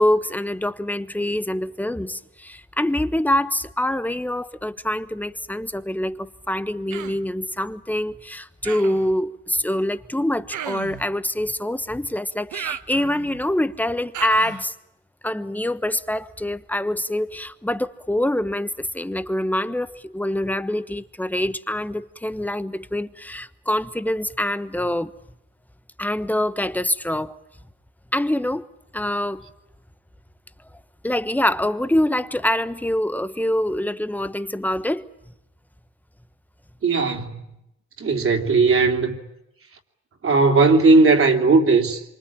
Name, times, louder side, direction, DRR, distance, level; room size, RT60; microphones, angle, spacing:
voice 1, 0.0-14.7 15.2-25.1 26.0-27.3 28.1-28.6 28.9-29.4 31.0-35.1, left 1 dB, 5° left, 1.2 m, -25 dB
Human voice, 6.9-7.3 8.6-9.1 10.5-11.1 12.5-13.4 14.1-14.7, right 10 dB, 75° right, 1.4 m, -34 dB
voice 2, 36.8-37.3 38.0-39.2 40.2-42.0, right 3 dB, 45° right, 3.4 m, -17 dB
26.5 x 25.0 x 8.9 m
cardioid pair, 90°, 30 cm